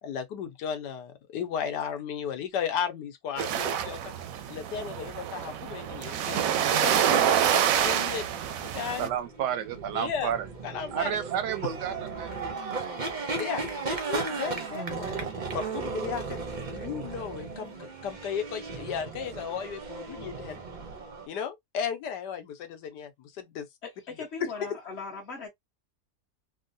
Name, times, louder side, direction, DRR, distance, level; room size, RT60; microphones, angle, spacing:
voice 1, 0.0-4.0 4.5-6.4 6.7-8.3 8.6-9.1 9.9-10.3 10.6-11.2 13.4-13.6 13.9-16.4 16.7-20.6 21.3-23.7 24.5-24.7, left 7 dB, 90° left, 1.4 m, -35 dB
sound 1, 3.4-9.1, right 9 dB, 70° right, 0.9 m, -27 dB
sound 2, 7.7-21.3, right 4 dB, 50° right, 0.5 m, -36 dB
voice 2, 9.0-10.5 10.9-13.6, right 9 dB, 90° right, 1.3 m, -32 dB
voice 3, 23.8-25.5, left 4 dB, 45° left, 1.3 m, -39 dB
3.6 x 2.1 x 2.6 m
omnidirectional pair, 1.7 m